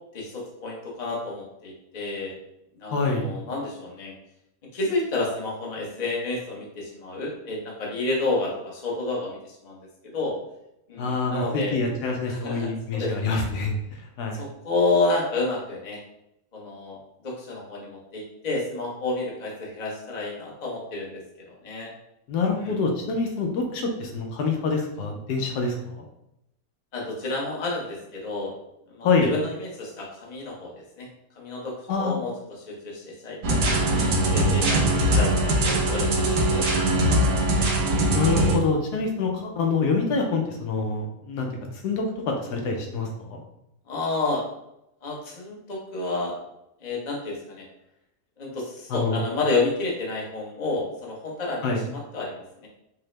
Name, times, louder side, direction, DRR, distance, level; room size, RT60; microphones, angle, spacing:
voice 1, 0.1-2.4 2.8-4.1 4.7-9.8 10.1-10.4 10.9-11.8 12.3-13.4 14.3-16.0 16.5-21.9 22.6-22.8 26.9-28.5 28.9-31.1 31.4-37.5 43.9-44.4 45.0-46.4 46.8-47.6 48.4-52.7, left 2 dB, 35° left, -2 dB, 0.8 m, -30 dB
voice 2, 2.9-3.3 11.0-13.7 14.2-14.4 22.3-26.0 29.0-29.3 31.9-32.1 38.1-41.5 41.8-43.4 48.9-49.2 51.6-51.8, left 4 dB, 80° left, 2 dB, 1.2 m, -26 dB
sound 1, 33.4-38.6, right 1 dB, 80° right, 1.2 m, -21 dB
4.7 x 2.0 x 3.2 m, 0.82 s
omnidirectional pair, 1.7 m